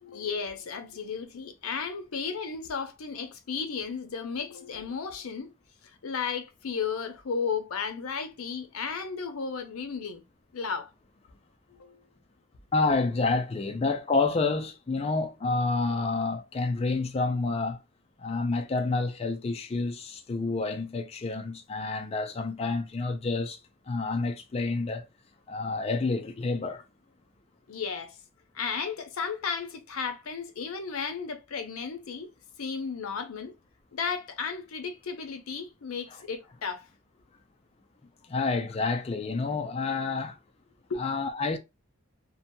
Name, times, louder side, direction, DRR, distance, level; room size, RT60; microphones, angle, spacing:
voice 1, 0.0-5.5 6.0-10.2 10.5-10.9 11.7-12.0 27.7-28.2 28.5-32.3 32.6-33.5 33.9-36.9 40.9-41.0, left 5 dB, 85° left, 0.6 m, -34 dB
voice 2, 12.7-17.8 18.2-23.6 23.9-25.0 25.5-26.8 38.3-40.4 41.0-41.6, left 3 dB, 30° left, 0.4 m, -29 dB
2.8 x 2.2 x 2.6 m
head